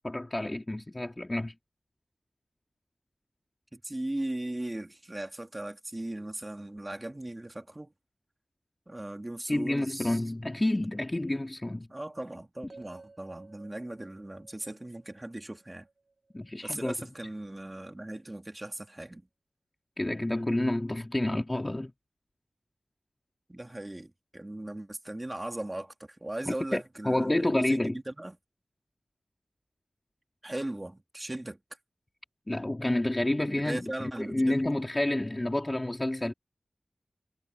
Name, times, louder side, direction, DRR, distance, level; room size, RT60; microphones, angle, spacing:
voice 1, 0.0-1.5 9.5-11.9 16.3-16.9 20.0-21.9 26.5-28.0 32.5-36.3, left 1 dB, 25° left, 2.3 m, -29 dB
voice 2, 3.7-7.9 8.9-10.2 11.9-15.9 16.6-19.2 23.5-28.4 30.4-31.6 33.5-34.6, right 1 dB, 25° right, 2.9 m, -38 dB
sound 1, 12.7-16.8, right 3 dB, 60° right, 4.3 m, -55 dB
wide cardioid pair, 55°, 0 cm